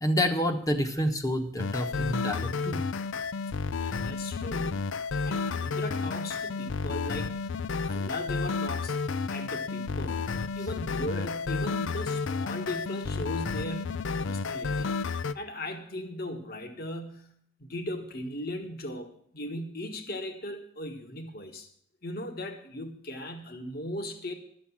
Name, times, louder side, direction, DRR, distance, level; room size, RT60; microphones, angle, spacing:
voice 1, 0.0-2.8, left 1 dB, 15° left, 6 dB, 1.1 m, -28 dB
sound 1, 1.6-15.3, left 4 dB, 65° left, 0.5 m, -31 dB
voice 2, 3.7-4.9 5.2-9.0 9.3-10.3 10.6-17.3 17.6-21.7 22.0-24.3, left 1 dB, 50° left, 5 dB, 1.5 m, -38 dB
12.5 x 7.8 x 7.2 m, 0.63 s
head